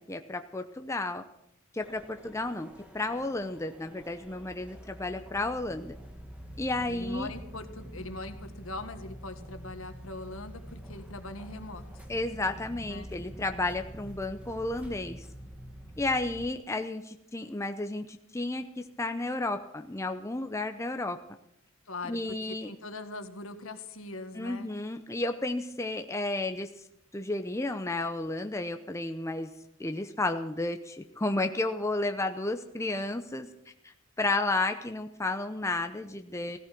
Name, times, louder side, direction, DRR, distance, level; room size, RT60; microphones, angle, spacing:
voice 1, 0.1-1.2 1.7-2.7 2.9-5.9 6.6-7.3 12.1-15.3 16.0-21.2 22.0-22.7 24.3-26.7 27.1-29.5 29.8-33.5 33.8-36.6, left 2 dB, 15° left, 6 dB, 0.7 m, -32 dB
sound 1, 1.8-16.5, equal, 5° right, 1.5 m, -46 dB
voice 2, 6.9-12.0 12.9-13.1 21.9-24.7, left 2 dB, 65° left, 8 dB, 1.7 m, -41 dB
16.5 x 14.5 x 6.0 m, 0.76 s
head